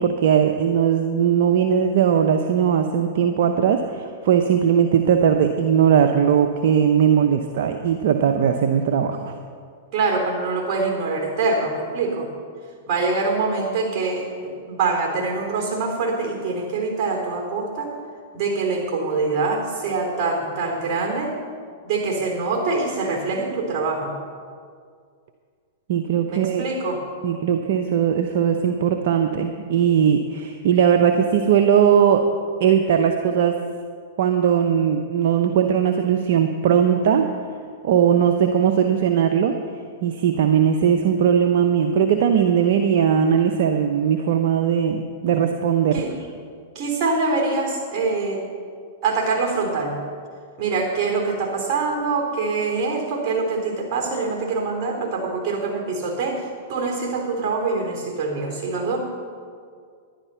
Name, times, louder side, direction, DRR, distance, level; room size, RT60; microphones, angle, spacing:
voice 1, 0.0-9.3 25.9-26.6 27.2-32.2 32.6-33.6 34.2-37.3 37.8-39.5 40.0-46.0, right 8 dB, 60° right, 5 dB, 0.8 m, -19 dB
voice 2, 9.9-12.3 12.9-17.9 18.3-21.4 21.8-24.1 26.3-27.1 45.9-46.2 46.8-48.5 49.0-50.0 50.6-59.0, right 3 dB, 40° right, 1 dB, 3.8 m, -24 dB
11.5 x 11.0 x 5.7 m, 2.1 s
hypercardioid pair, 115°, 0 cm